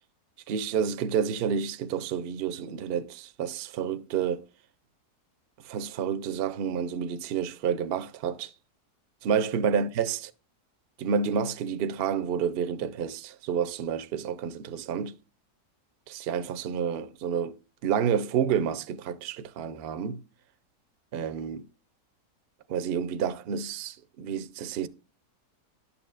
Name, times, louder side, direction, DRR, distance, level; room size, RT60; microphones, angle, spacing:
voice 1, 0.5-4.4 5.6-8.5 9.2-10.2 11.0-15.2 16.1-17.6 17.8-20.2 21.1-21.7 22.7-24.9, right 7 dB, 65° right, 0.6 m, -29 dB
11.5 x 7.0 x 2.4 m
omnidirectional pair, 1.7 m